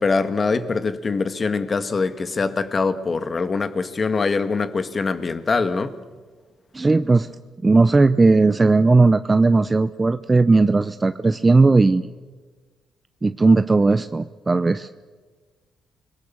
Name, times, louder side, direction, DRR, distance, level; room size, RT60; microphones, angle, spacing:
voice 1, 0.0-5.9, left 4 dB, 35° left, 1.8 m, -23 dB
voice 2, 6.7-7.3 7.6-12.1 13.2-14.9, right 3 dB, 25° right, 0.7 m, -17 dB
29.0 x 21.0 x 7.3 m
cardioid pair, 90°, 0 cm